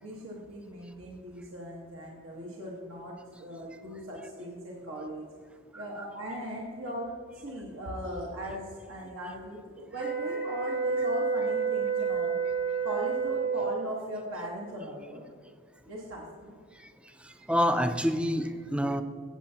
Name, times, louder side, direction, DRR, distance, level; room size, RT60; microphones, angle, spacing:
voice 1, 0.0-5.2 5.7-12.4 12.8-15.2 15.9-16.5, right 1 dB, 70° right, -3 dB, 1.4 m, -39 dB
voice 2, 5.7-6.0 17.5-19.0, equal, 5° right, 8 dB, 0.5 m, -27 dB
sound 1, 10.0-13.9, right 5 dB, 50° right, 1.5 m, -29 dB
16.0 x 7.9 x 2.8 m, 2.2 s
head